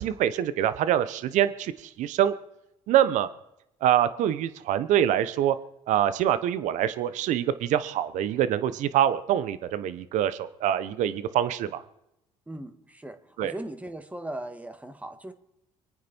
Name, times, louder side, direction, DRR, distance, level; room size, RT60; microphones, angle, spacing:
voice 1, 0.0-1.7 2.0-2.3 2.9-3.3 3.8-5.5 5.9-11.8 13.4-13.5, right 11 dB, 70° right, 14 dB, 1.0 m, -25 dB
voice 2, 12.5-15.3, right 1 dB, 10° right, 8 dB, 2.0 m, -38 dB
25.0 x 9.4 x 4.5 m, 0.83 s
supercardioid pair, 75°, 13 cm